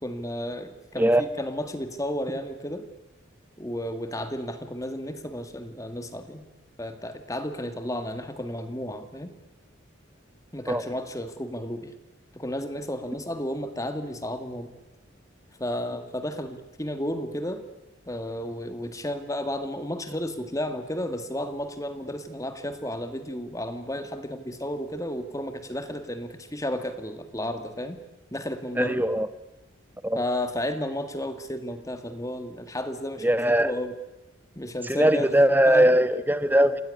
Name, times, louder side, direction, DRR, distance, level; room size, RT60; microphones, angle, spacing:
voice 1, 0.0-2.9 3.6-6.4 6.8-9.3 10.5-11.9 12.3-14.7 15.6-17.6 18.1-28.0 28.3-29.0 30.2-34.0 34.6-35.3 35.7-36.0, left 1 dB, 15° left, 8 dB, 1.9 m, -32 dB
voice 2, 28.8-29.3 30.0-30.2 33.2-33.7 34.9-36.8, right 1 dB, 10° right, 12 dB, 1.2 m, -20 dB
28.0 x 18.5 x 9.9 m, 0.99 s
head